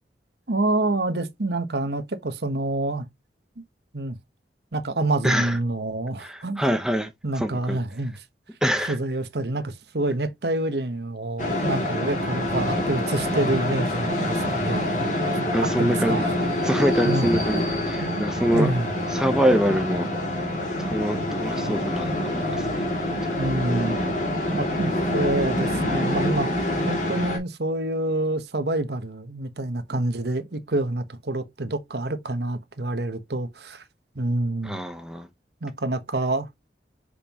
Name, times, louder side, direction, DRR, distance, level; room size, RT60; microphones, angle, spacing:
voice 1, 0.5-3.1 3.9-4.2 4.7-6.6 7.2-8.1 8.9-14.8 15.6-16.3 17.0-17.4 18.0-18.3 18.5-18.9 23.3-24.0 24.5-26.5 26.9-33.8 34.1-34.8 35.6-36.5, right 2 dB, 65° right, 1.1 m, -27 dB
voice 2, 5.2-5.6 6.2-7.1 7.4-7.8 8.6-9.0 15.5-16.3 16.6-18.7 19.1-20.1 20.8-22.8 34.6-35.3, equal, 5° right, 0.9 m, -25 dB
sound 1, 11.4-27.4, left 1 dB, 45° left, 2.7 m, -26 dB
6.7 x 5.4 x 3.0 m
head